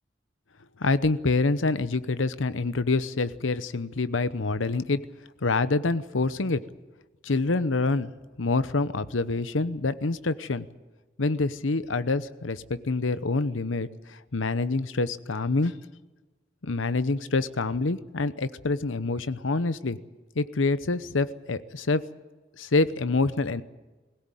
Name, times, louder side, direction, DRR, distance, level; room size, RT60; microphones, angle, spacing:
voice 1, 0.8-5.0 5.4-6.6 7.2-8.1 8.4-10.7 11.2-15.7 16.6-20.0 20.4-22.0 22.6-23.6, left 3 dB, 90° left, 14 dB, 0.9 m, -26 dB
20.5 x 17.5 x 9.1 m, 1.2 s
head